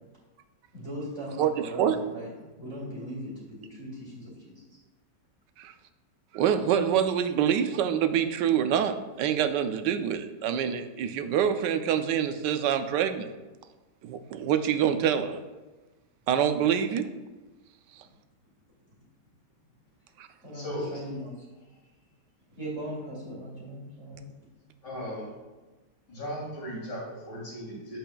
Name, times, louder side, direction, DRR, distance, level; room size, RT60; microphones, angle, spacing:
voice 1, 0.7-4.8 20.4-21.5 22.6-24.3, equal, 40° right, -6 dB, 2.6 m, -39 dB
voice 2, 1.4-2.0 5.6-5.7 6.3-13.3 14.0-15.4 16.3-17.1 20.2-20.3, right 9 dB, 85° right, 9 dB, 1.3 m, -26 dB
voice 3, 20.5-20.9 24.8-25.3 26.1-28.0, equal, 85° left, -5 dB, 3.6 m, -37 dB
10.5 x 7.7 x 2.3 m, 1.2 s
omnidirectional pair, 1.8 m